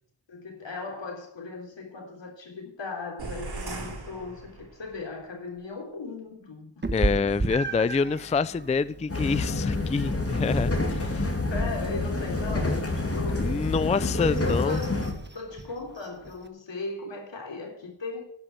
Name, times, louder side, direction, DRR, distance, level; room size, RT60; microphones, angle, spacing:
voice 1, 0.3-6.7 11.5-15.0 15.3-18.2, left 3 dB, 80° left, 3.4 m, -37 dB
sound 1, 3.2-5.0, right 3 dB, 60° right, 3.9 m, -38 dB
Meow, 6.8-16.5, right 3 dB, 25° right, 1.2 m, -36 dB
voice 2, 6.9-11.3 13.4-14.8, left 4 dB, 15° left, 0.4 m, -27 dB
sound 2, 9.1-15.1, left 2 dB, 30° left, 2.5 m, -28 dB
11.5 x 5.8 x 9.0 m
cardioid pair, 60°, 43 cm